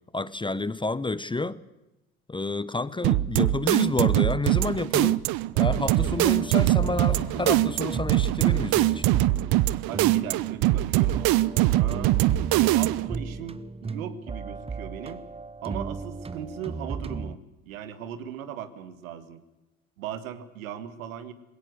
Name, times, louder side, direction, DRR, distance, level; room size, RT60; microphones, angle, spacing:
voice 1, 0.1-1.6 2.3-5.2 5.5-9.1, left 3 dB, 10° left, 0.8 m, -29 dB
sound 1, 3.0-13.2, right 17 dB, 60° right, 0.9 m, -23 dB
sound 2, 5.7-17.3, right 4 dB, 15° right, 0.7 m, -36 dB
sound 3, 6.2-8.9, left 12 dB, 60° left, 2.8 m, -47 dB
voice 2, 9.9-12.2 12.5-15.2 15.6-17.4 17.7-19.4 20.0-21.3, right 9 dB, 80° right, 1.9 m, -38 dB
21.0 x 17.5 x 8.0 m
hypercardioid pair, 65°, 41 cm